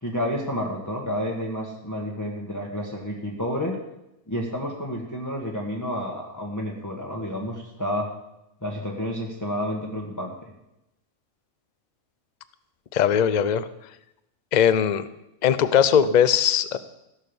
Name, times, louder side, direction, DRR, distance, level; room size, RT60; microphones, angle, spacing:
voice 1, 0.0-3.8 4.3-8.1 8.6-10.3, equal, 15° left, -1 dB, 1.3 m, -30 dB
voice 2, 12.9-13.7 14.5-15.1 15.4-16.8, left 8 dB, 50° left, 14 dB, 0.6 m, -19 dB
15.5 x 6.6 x 6.9 m, 0.88 s
omnidirectional pair, 1.4 m